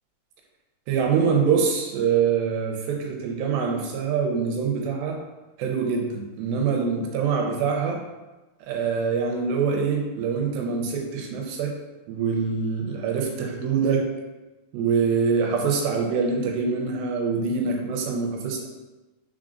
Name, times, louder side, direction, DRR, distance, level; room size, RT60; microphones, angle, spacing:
voice 1, 0.9-5.2 5.6-8.0 8.6-11.8 12.1-14.1 14.7-18.7, right 5 dB, 80° right, 1 dB, 2.2 m, -24 dB
5.0 x 3.9 x 2.5 m, 1.1 s
omnidirectional pair, 4.4 m